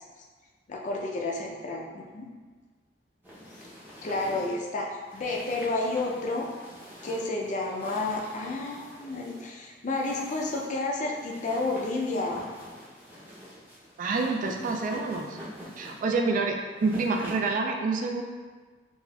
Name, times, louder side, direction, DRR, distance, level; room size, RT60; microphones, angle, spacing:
voice 1, 0.7-2.3 4.0-6.5 7.0-12.4, left 2 dB, 45° left, -1 dB, 0.4 m, -31 dB
sound 1, 3.2-17.6, equal, 10° right, 0.7 m, -46 dB
voice 2, 14.0-15.4 15.8-18.2, right 3 dB, 45° right, 3 dB, 0.3 m, -27 dB
4.1 x 2.3 x 2.3 m, 1.4 s
head